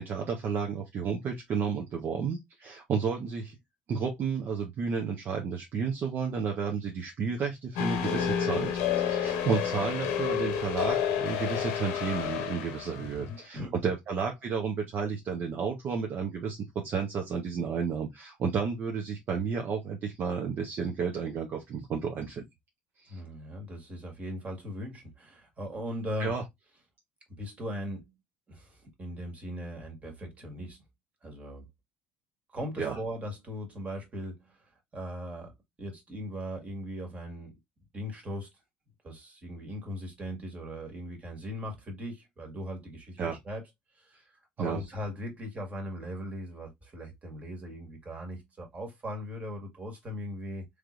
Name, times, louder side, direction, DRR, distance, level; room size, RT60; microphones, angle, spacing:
voice 1, 0.0-3.6 3.9-22.4 23.0-23.2 26.2-26.4 32.8-33.0 43.2-43.4 44.6-44.8, right 6 dB, 50° right, 0.8 m, -32 dB
sound 1, 7.8-13.1, left 8 dB, 70° left, 0.8 m, -30 dB
voice 2, 13.0-13.7 23.1-26.3 27.4-28.0 28.5-30.8 31.2-31.7 32.5-35.5 35.8-37.6 37.9-38.5 39.0-43.2 43.4-43.6 43.9-50.7, equal, 30° right, 1.7 m, -39 dB
3.3 x 3.2 x 2.5 m
hypercardioid pair, 65°, 5 cm